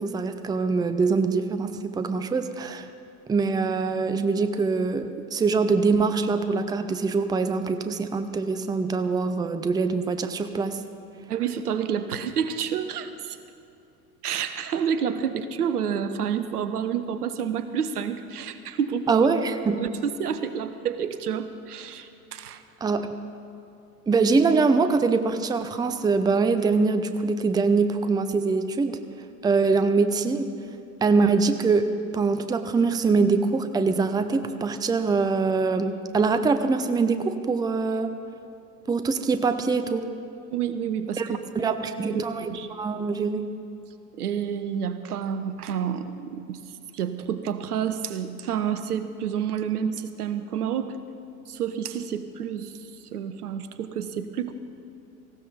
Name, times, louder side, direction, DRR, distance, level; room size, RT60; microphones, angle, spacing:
voice 1, 0.0-2.9 3.3-10.8 19.1-19.8 22.8-23.1 24.1-29.0 29.4-30.5 31.0-38.1 38.9-40.0 41.2-41.3 41.5-43.5, right 4 dB, 10° right, 9 dB, 0.6 m, -23 dB
voice 2, 11.3-13.4 14.2-19.3 19.7-22.6 40.5-42.7 44.2-46.6 46.9-51.0 51.5-52.7 53.1-54.5, right 8 dB, 75° right, 11 dB, 1.0 m, -29 dB
18.5 x 16.0 x 4.0 m, 2.7 s
figure-of-eight pair, 80°, 46 cm